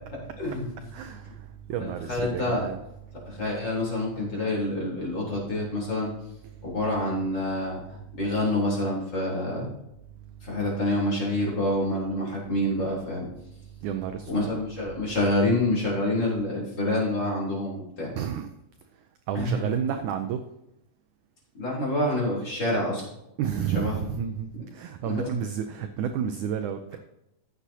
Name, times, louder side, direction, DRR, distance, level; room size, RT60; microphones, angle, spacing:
voice 1, 0.4-1.3 1.8-2.7 3.3-6.1 6.6-9.7 10.4-13.3 14.3-18.1 19.3-19.7 21.5-23.1 23.7-24.0 25.0-25.3, left 1 dB, 30° left, -4 dB, 4.1 m, -27 dB
voice 2, 0.9-1.2 1.7-2.8 13.8-14.6 18.2-18.5 19.3-20.4 23.4-26.8, right 8 dB, 80° right, 7 dB, 1.8 m, -30 dB
14.5 x 8.2 x 2.8 m, 0.86 s
omnidirectional pair, 4.2 m